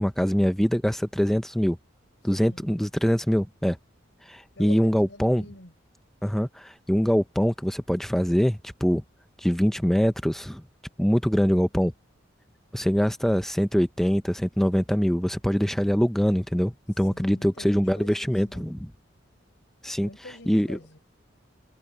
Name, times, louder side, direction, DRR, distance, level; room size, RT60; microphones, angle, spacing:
voice 1, 0.0-1.8 2.2-3.8 4.3-5.4 6.2-9.0 9.4-10.6 11.0-11.9 12.7-18.9 19.8-20.1 20.5-20.8, equal, ahead, 0.5 m, -23 dB
voice 2, 2.4-2.7 4.6-5.7 17.1-18.7 20.0-21.0, left 2 dB, 65° left, 5.9 m, -46 dB
head